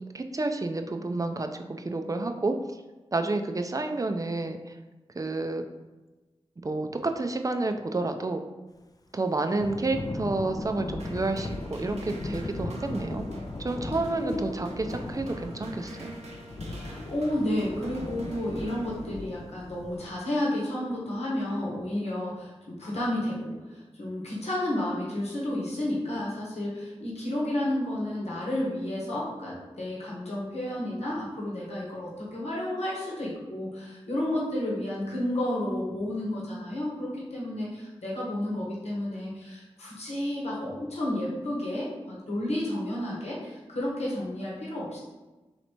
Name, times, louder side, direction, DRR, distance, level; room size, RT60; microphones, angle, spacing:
voice 1, 0.1-2.5 3.1-4.6 5.2-5.6 6.6-8.4 9.1-13.2 13.6-16.2, right 2 dB, 30° right, 6 dB, 0.4 m, -30 dB
Thunder / Rain, 9.6-20.1, left 2 dB, 35° left, 0.4 m, -38 dB
sound 1, 11.0-19.5, right 1 dB, 85° right, 0.6 m, -45 dB
voice 2, 16.7-45.0, left 1 dB, 80° left, -5 dB, 1.1 m, -31 dB
3.2 x 2.8 x 4.3 m, 1.2 s
cardioid pair, 45°, 11 cm